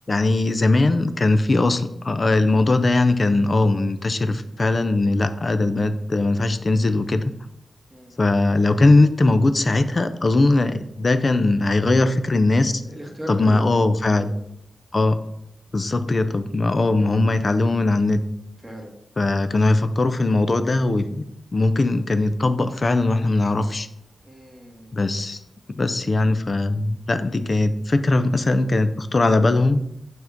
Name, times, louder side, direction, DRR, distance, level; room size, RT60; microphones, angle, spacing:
voice 1, 0.1-7.3 8.2-12.8 13.3-14.3 14.9-15.2 15.7-18.2 19.2-21.2 21.5-23.9 24.9-25.4 25.7-29.8, left 2 dB, 35° left, 10 dB, 0.4 m, -20 dB
voice 2, 12.8-13.8 14.2-14.4 16.1-16.3 18.6-18.9 24.2-25.0, equal, 5° right, 0 dB, 1.4 m, -38 dB
6.2 x 3.6 x 5.7 m, 0.77 s
wide cardioid pair, 115°, 0 cm